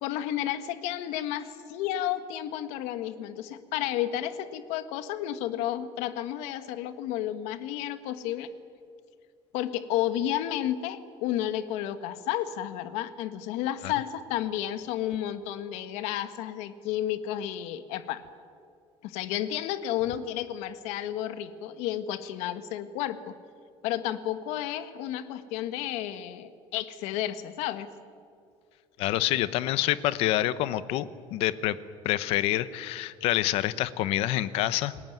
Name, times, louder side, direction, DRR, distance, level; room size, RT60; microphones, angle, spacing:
voice 1, 0.0-8.5 9.5-18.2 19.0-23.3 23.8-27.9, left 12 dB, 85° left, 11 dB, 1.5 m, -32 dB
voice 2, 29.0-31.8 32.0-35.1, left 14 dB, 60° left, 15 dB, 1.0 m, -27 dB
29.5 x 19.5 x 9.3 m, 2.3 s
cardioid pair, 180°, 11 cm